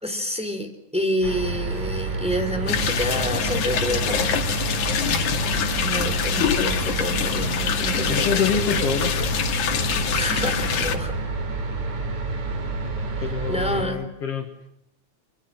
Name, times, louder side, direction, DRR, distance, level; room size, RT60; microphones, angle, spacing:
voice 1, 0.0-4.5 5.8-8.9 10.1-11.1 13.5-14.1, equal, ahead, 5 dB, 3.8 m, -28 dB
sound 1, 1.2-13.9, right 3 dB, 75° right, 4.7 m, -29 dB
sound 2, 2.7-11.0, left 7 dB, 85° left, 3.3 m, -25 dB
voice 2, 8.1-9.3 13.2-14.7, left 7 dB, 55° left, 6 dB, 2.6 m, -27 dB
27.5 x 26.5 x 7.6 m, 0.77 s
omnidirectional pair, 3.4 m